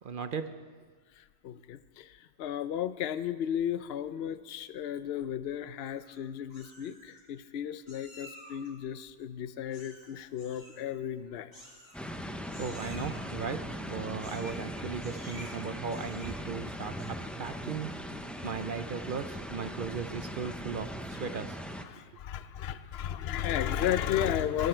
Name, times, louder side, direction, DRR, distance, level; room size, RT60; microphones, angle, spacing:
voice 1, 0.0-0.5 12.6-17.9 18.4-21.6, right 6 dB, 55° right, 9 dB, 0.7 m, -37 dB
voice 2, 1.2-11.5 21.8-24.7, left 10 dB, 60° left, 13 dB, 0.8 m, -34 dB
Meow, 5.8-6.2 6.5-7.2 7.9-8.7 9.7-10.1 10.4-10.8 11.5-12.2 12.5-13.2 14.2-14.7 15.0-15.5 15.9-16.5 16.9-17.3, equal, 85° left, 5.8 m, -51 dB
sound 1, 11.9-21.8, equal, ahead, 0.5 m, -39 dB
20.5 x 12.0 x 4.4 m, 1.5 s
omnidirectional pair, 1.3 m